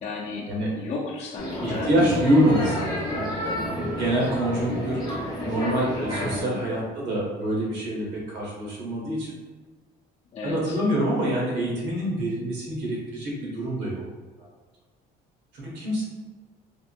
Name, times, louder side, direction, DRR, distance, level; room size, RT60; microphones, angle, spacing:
voice 1, 0.0-2.2 6.3-6.6 10.3-10.8, left 3 dB, 40° left, -4 dB, 0.6 m, -34 dB
sound 1, 1.4-6.4, left 1 dB, 25° left, 1.0 m, -30 dB
voice 2, 1.6-5.0 5.4-9.3 10.4-14.0 15.5-16.0, right 1 dB, 90° right, -4 dB, 1.2 m, -26 dB
3.5 x 2.7 x 2.2 m, 1.3 s
cardioid pair, 110°, 17 cm